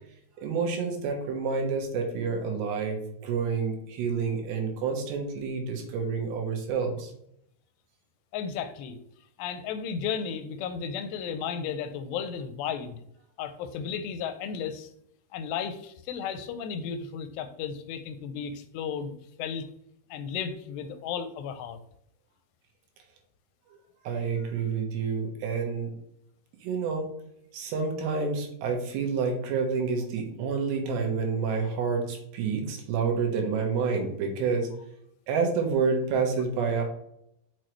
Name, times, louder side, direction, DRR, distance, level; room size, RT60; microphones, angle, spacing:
voice 1, 0.4-7.1 23.7-23.8 24.0-25.9 26.6-27.1 27.5-34.7 35.3-36.8, right 5 dB, 80° right, 2 dB, 3.3 m, -28 dB
voice 2, 8.3-9.0 9.4-13.0 13.4-14.9 15.3-19.1 19.4-19.7 20.1-21.8, left 7 dB, 85° left, 10 dB, 2.7 m, -34 dB
6.4 x 6.3 x 3.1 m, 0.73 s
omnidirectional pair, 5.0 m